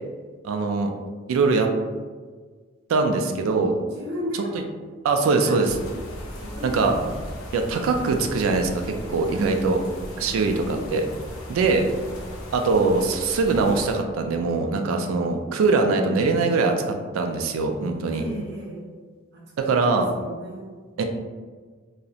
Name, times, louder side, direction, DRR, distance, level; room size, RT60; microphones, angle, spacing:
voice 1, 0.4-0.9 1.3-1.7 2.9-3.7 5.0-5.7 6.6-6.9 7.5-8.7 9.1-9.8 10.2-11.0 11.5-11.9 12.5-16.8 17.1-18.2 19.6-20.1 21.0-21.1, right 3 dB, 80° right, 5 dB, 0.3 m, -22 dB
voice 2, 3.9-4.6 5.2-5.6 6.3-7.1 9.3-10.6 18.1-18.9 19.3-20.7, equal, 55° right, -4 dB, 0.7 m, -35 dB
sound 1, 5.6-14.0, left 1 dB, 85° left, 0.5 m, -37 dB
2.7 x 2.0 x 2.4 m, 1.5 s
head